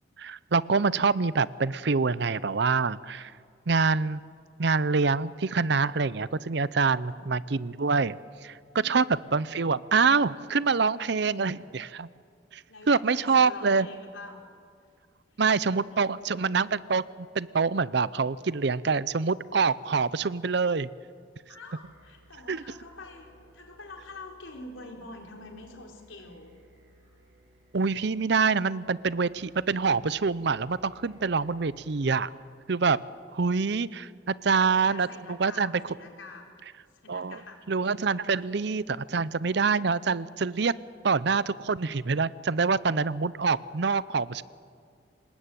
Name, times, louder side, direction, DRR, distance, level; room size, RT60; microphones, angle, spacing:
voice 1, 0.2-3.3 3.7-4.2 4.6-8.2 8.4-8.6 8.8-9.1 9.3-12.1 12.5-12.6 12.9-13.9 15.4-20.9 22.5-22.6 27.7-32.3 32.7-33.0 33.3-35.7 37.1-37.4 37.7-40.7 41.0-44.4, right 4 dB, 60° right, 18 dB, 0.6 m, -26 dB
voice 2, 12.7-14.5 15.8-16.1 21.5-23.3 23.5-26.5 34.6-36.5 37.0-37.6 38.2-38.4, left 2 dB, 85° left, 2 dB, 4.2 m, -46 dB
sound 1, 21.8-32.1, equal, 80° right, 8.0 m, -59 dB
26.5 x 19.5 x 9.2 m, 2.2 s
head